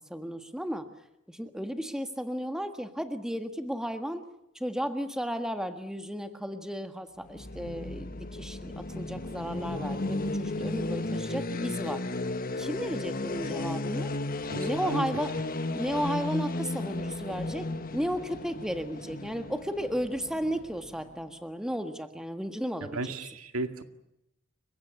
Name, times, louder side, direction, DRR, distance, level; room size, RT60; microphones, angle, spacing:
voice 1, 0.1-0.9 1.3-4.2 4.5-12.0 12.6-14.1 14.5-15.3 15.7-23.1, equal, 5° right, 7 dB, 1.6 m, -34 dB
sound 1, 7.2-21.1, left 2 dB, 40° left, 1.4 m, -34 dB
voice 2, 14.5-15.1 22.9-23.8, right 3 dB, 75° right, 8 dB, 2.1 m, -34 dB
30.0 x 16.5 x 10.0 m, 0.83 s
head